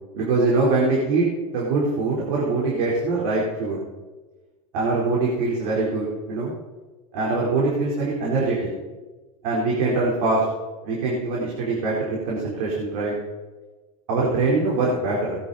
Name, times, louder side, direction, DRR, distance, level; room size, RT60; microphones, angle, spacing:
voice 1, 0.1-1.3 1.5-3.8 4.7-6.5 7.1-8.7 9.4-10.4 10.8-13.1 14.1-15.4, right 3 dB, 65° right, -4 dB, 4.2 m, -23 dB
18.5 x 11.5 x 4.3 m, 1.3 s
supercardioid pair, 125°, 19 cm